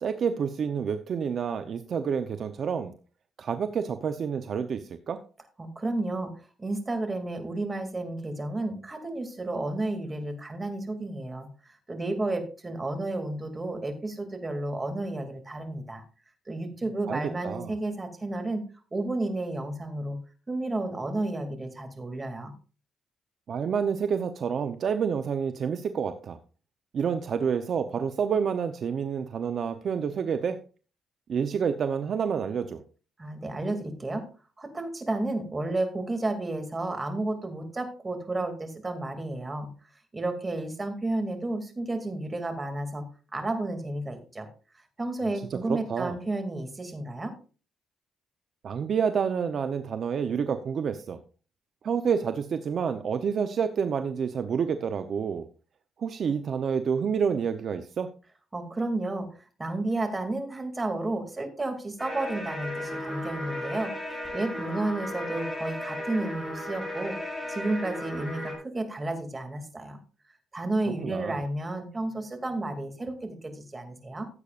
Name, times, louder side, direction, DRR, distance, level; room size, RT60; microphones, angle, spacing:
voice 1, 0.0-2.9 3.4-5.2 17.1-17.7 23.5-26.4 26.9-30.6 31.3-32.8 45.5-46.1 48.6-51.2 51.8-55.5 56.0-58.1 71.0-71.4, right 6 dB, 55° right, 9 dB, 0.7 m, -28 dB
voice 2, 5.6-6.3 6.6-16.0 16.5-18.6 18.9-20.2 20.5-22.5 33.2-34.2 34.6-39.7 40.1-43.1 43.3-44.5 45.0-47.3 58.5-59.3 59.6-67.2 67.5-70.0 70.5-74.3, right 2 dB, 20° right, 7 dB, 2.5 m, -32 dB
sound 1, 62.0-68.5, left 1 dB, 5° left, 5.2 m, -35 dB
15.5 x 8.2 x 2.5 m, 0.36 s
cardioid pair, 90°, 0 cm